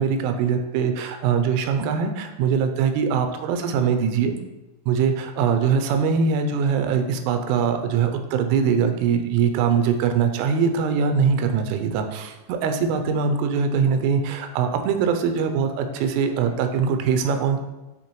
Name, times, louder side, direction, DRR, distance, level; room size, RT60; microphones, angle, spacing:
voice 1, 0.0-4.3 4.9-17.6, right 6 dB, 85° right, 6 dB, 3.1 m, -22 dB
9.8 x 3.7 x 3.0 m, 1.0 s
omnidirectional pair, 5.7 m